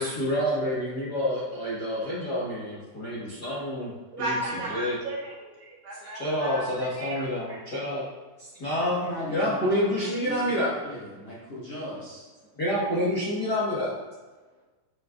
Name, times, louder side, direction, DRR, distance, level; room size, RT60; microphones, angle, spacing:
voice 1, 0.0-3.9 4.2-5.0 6.0-8.0 8.4-10.7 12.6-13.9, equal, 80° left, -8 dB, 0.9 m, -28 dB
voice 2, 4.2-7.6, right 1 dB, 60° right, -5 dB, 2.9 m, -34 dB
voice 3, 9.0-12.2, equal, 55° left, -9 dB, 1.7 m, -37 dB
9.2 x 7.7 x 2.6 m, 1.2 s
omnidirectional pair, 4.9 m